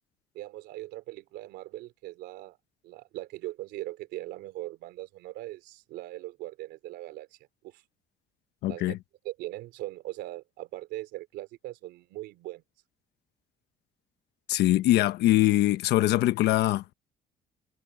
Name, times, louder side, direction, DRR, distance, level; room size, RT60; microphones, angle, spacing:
voice 1, 0.3-2.6 2.8-7.4 7.6-7.8 8.7-9.0 9.2-12.6, right 17 dB, 90° right, 3.3 m, -40 dB
voice 2, 8.6-9.0 14.5-16.9, left 15 dB, 80° left, 1.2 m, -23 dB
cardioid pair, 110°, 17 cm